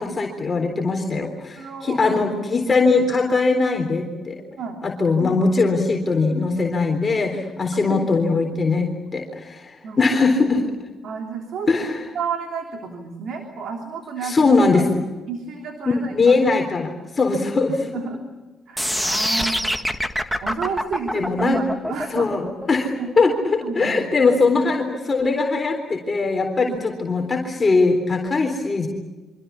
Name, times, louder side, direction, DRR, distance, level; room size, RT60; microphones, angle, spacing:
voice 1, 0.0-4.4 5.0-8.9 9.1-10.7 11.7-12.0 14.2-15.0 15.9-17.9 21.1-21.6 22.1-28.9, left 3 dB, 30° left, 1 dB, 3.8 m, -20 dB
voice 2, 1.6-2.4 4.6-4.8 7.8-8.1 9.8-10.0 11.0-11.7 12.1-14.8 15.3-16.3 17.9-18.2 18.7-19.8 20.4-22.5 23.0-23.1 23.6-24.1 26.6-26.8, right 5 dB, 70° right, 3 dB, 3.2 m, -31 dB
sound 1, 18.8-24.8, equal, ahead, 1.7 m, -25 dB
27.0 x 25.5 x 7.1 m, 1.2 s
cardioid pair, 90°, 0 cm